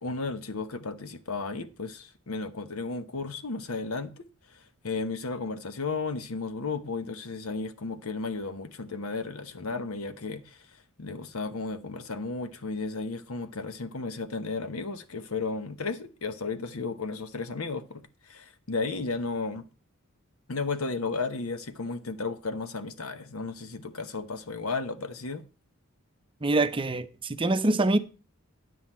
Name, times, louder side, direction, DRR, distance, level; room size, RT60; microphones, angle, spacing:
voice 1, 0.0-19.7 20.5-25.4, left 4 dB, 75° left, 1.0 m, -34 dB
voice 2, 26.4-28.0, right 2 dB, 25° right, 0.6 m, -25 dB
9.4 x 8.0 x 4.3 m
head